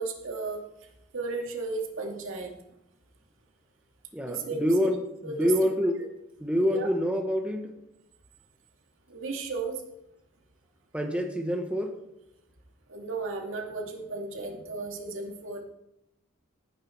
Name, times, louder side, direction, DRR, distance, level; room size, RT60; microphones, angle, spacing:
voice 1, 0.0-2.5 4.2-4.9 5.2-5.7 6.7-6.9 9.1-9.8 12.9-15.6, right 3 dB, 65° right, 1 dB, 2.5 m, -34 dB
voice 2, 4.1-5.0 5.2-5.9 6.4-7.8 10.9-12.0, equal, 5° right, 2 dB, 1.2 m, -26 dB
18.0 x 9.7 x 4.6 m, 0.86 s
head